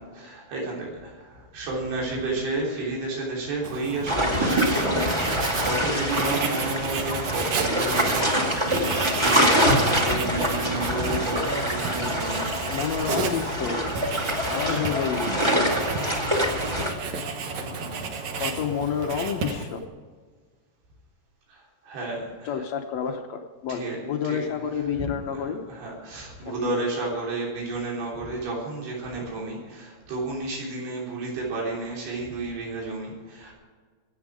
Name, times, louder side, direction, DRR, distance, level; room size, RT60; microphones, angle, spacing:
voice 1, 0.1-13.2 14.4-14.8 17.4-18.0 21.5-21.6 21.8-22.5 23.7-24.0 24.2-24.4 25.0-33.5, right 2 dB, 85° right, -3 dB, 5.4 m, -32 dB
Writing, 3.6-19.8, right 4 dB, 60° right, 2.3 m, -32 dB
sound 1, 4.1-16.9, equal, 15° right, 0.8 m, -25 dB
voice 2, 12.7-13.8 14.5-15.4 18.4-19.8 22.4-25.6 26.4-26.9, left 7 dB, 80° left, 4 dB, 1.5 m, -29 dB
23.5 x 8.5 x 4.9 m, 1.6 s
omnidirectional pair, 4.4 m